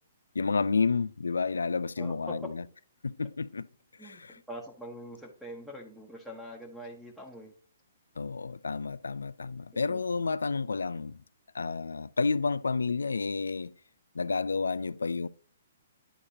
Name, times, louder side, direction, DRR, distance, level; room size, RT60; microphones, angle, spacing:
voice 1, 0.3-2.6 3.0-3.7 4.0-4.4 8.2-11.2 11.5-13.7 14.1-15.3, left 4 dB, 80° left, 0.3 m, -30 dB
voice 2, 2.0-2.3 4.0-4.2 4.5-7.5 9.9-10.0, equal, ahead, 1.1 m, -43 dB
10.0 x 4.9 x 2.8 m
figure-of-eight pair, 125°, 0 cm